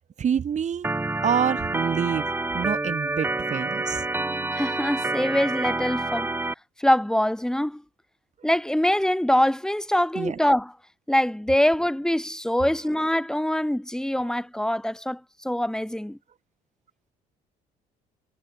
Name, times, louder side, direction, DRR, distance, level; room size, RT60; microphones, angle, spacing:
voice 1, 0.2-0.9 1.2-4.0 10.2-10.4, right 8 dB, 45° right, 6.0 m, -27 dB
Organ, 0.8-6.6, right 2 dB, 10° right, 1.8 m, -28 dB
voice 2, 4.5-6.3 6.8-7.8 8.4-10.7 11.1-16.2, left 1 dB, 5° left, 7.1 m, -24 dB
cardioid pair, 110°, 17 cm